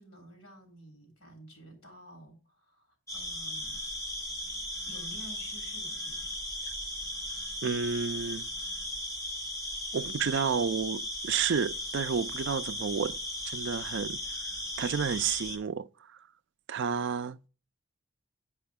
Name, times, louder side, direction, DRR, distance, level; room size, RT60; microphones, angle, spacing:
voice 1, 0.0-2.9 3.1-3.8 4.5-6.3, right 1 dB, 85° left, 3.5 m, -51 dB
sound 1, 3.1-15.6, left 1 dB, 15° left, 1.2 m, -37 dB
voice 2, 7.6-8.5 9.9-13.2 13.5-14.2 14.8-15.9 16.7-17.5, right 6 dB, 55° right, 0.4 m, -31 dB
9.4 x 4.9 x 3.6 m
head